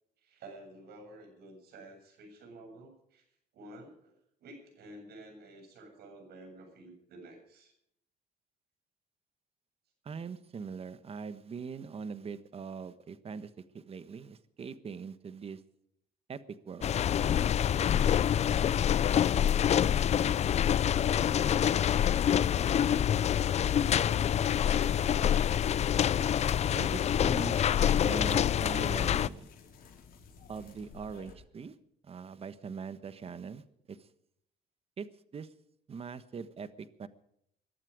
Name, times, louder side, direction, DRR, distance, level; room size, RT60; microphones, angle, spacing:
voice 1, 0.2-3.2 3.5-7.7 19.7-20.2 20.9-22.1 22.5-23.3 23.6-25.8, right 2 dB, 70° right, 5 dB, 7.3 m, -51 dB
voice 2, 10.0-15.6 16.3-16.9 26.7-27.7 27.9-29.5 30.5-31.8 32.0-33.6 33.9-34.1 35.0-35.1 35.3-35.5 35.9-37.1, right 5 dB, 35° right, 13 dB, 1.3 m, -42 dB
sound 1, 16.8-29.3, left 9 dB, 40° left, 0.5 m, -26 dB
sound 2, 22.3-31.3, left 5 dB, 60° left, 5.3 m, -54 dB
21.5 x 12.0 x 4.9 m, 0.73 s
cardioid pair, 110°, 17 cm